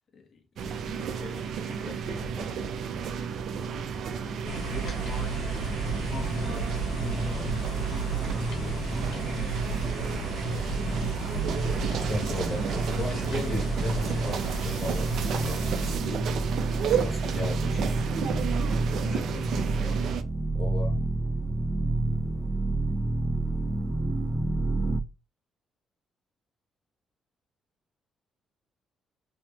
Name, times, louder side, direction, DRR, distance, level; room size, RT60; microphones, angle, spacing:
voice 1, 0.1-3.1 3.6-4.1 4.6-5.6 6.0-11.2 19.0-20.0, left 4 dB, 50° left, 1.2 m, -46 dB
sound 1, 0.6-20.2, right 7 dB, 70° right, 0.5 m, -32 dB
sound 2, 4.4-16.0, right 3 dB, 85° left, 1.5 m, -35 dB
sound 3, 5.3-25.0, right 2 dB, 5° right, 0.5 m, -30 dB
voice 2, 12.0-16.2 16.9-18.0 20.5-21.0, left 2 dB, 25° left, 1.6 m, -36 dB
3.5 x 2.9 x 2.9 m
cardioid pair, 90°, 0 cm